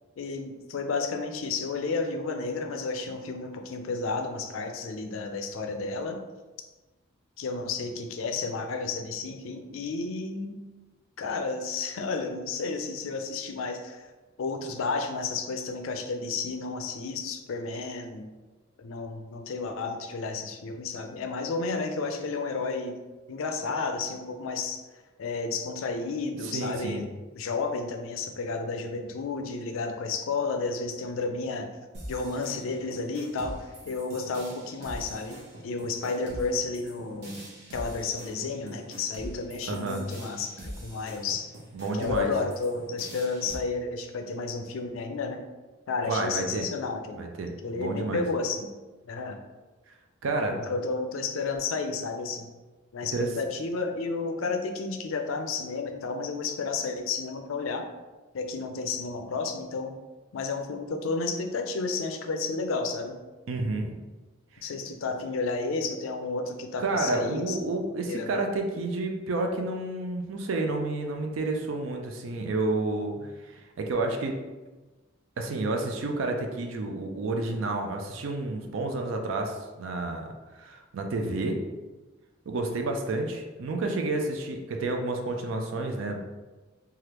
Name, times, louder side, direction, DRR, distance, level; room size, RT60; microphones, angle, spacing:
voice 1, 0.2-6.2 7.4-10.6 11.2-14.1 14.4-18.3 18.8-23.0 23.3-24.8 25.2-31.7 32.1-37.5 37.7-41.5 41.9-45.4 45.9-47.2 47.6-48.7 49.1-49.4 50.5-52.5 52.9-57.9 58.3-60.0 60.3-63.2 64.6-67.6 68.1-68.4, left 4 dB, 80° left, 5 dB, 0.4 m, -32 dB
voice 2, 26.4-27.0 39.7-40.0 41.7-42.3 46.0-46.7 47.2-48.2 50.2-50.6 53.1-53.3 63.5-63.9 64.5-64.6 66.8-73.2 73.4-74.4 75.4-80.3 80.6-81.6 82.5-86.2, right 2 dB, 70° right, 3 dB, 0.4 m, -30 dB
sound 1, 31.9-43.6, right 1 dB, 55° right, 0.9 m, -43 dB
3.3 x 2.3 x 2.9 m, 1.2 s
head